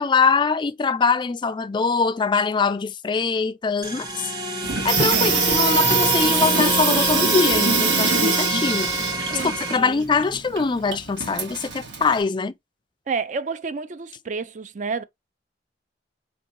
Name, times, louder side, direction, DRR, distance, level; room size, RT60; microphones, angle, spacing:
voice 1, 0.0-4.3 4.8-8.9 9.4-12.5, left 4 dB, 25° left, 0.3 m, -23 dB
sound 1, 3.8-9.8, right 1 dB, 25° right, 0.9 m, -26 dB
Water tap faucet / Sink (filling or washing), 4.6-12.2, right 4 dB, 80° right, 1.2 m, -24 dB
voice 2, 5.1-5.8 9.2-10.1 13.1-15.0, right 4 dB, 45° right, 0.4 m, -31 dB
4.4 x 2.8 x 2.5 m
head